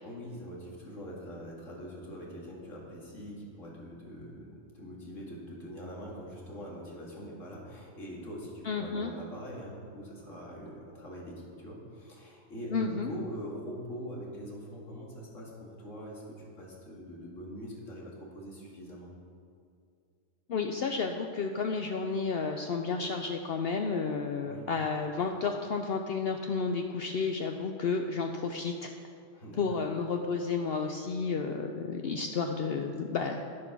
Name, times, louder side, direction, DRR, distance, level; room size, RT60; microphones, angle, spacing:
voice 1, 0.0-19.1 24.4-24.7 29.3-29.6, equal, 90° left, -3 dB, 2.5 m, -43 dB
voice 2, 8.6-9.1 12.7-13.1 20.5-28.9 29.6-33.4, left 4 dB, 60° left, 4 dB, 0.8 m, -31 dB
10.0 x 7.6 x 6.0 m, 2.4 s
omnidirectional pair, 1.3 m